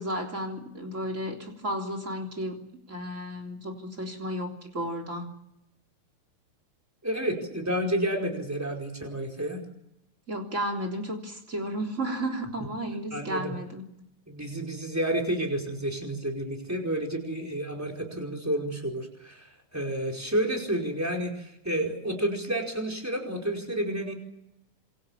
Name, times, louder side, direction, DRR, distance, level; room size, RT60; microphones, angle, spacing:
voice 1, 0.0-2.6 2.9-5.3 10.3-13.8, right 1 dB, 25° right, 2 dB, 3.7 m, -33 dB
voice 2, 7.0-9.6 13.1-13.5 14.3-24.1, right 1 dB, 5° right, 1 dB, 4.7 m, -30 dB
27.0 x 24.5 x 7.4 m, 0.85 s
omnidirectional pair, 3.5 m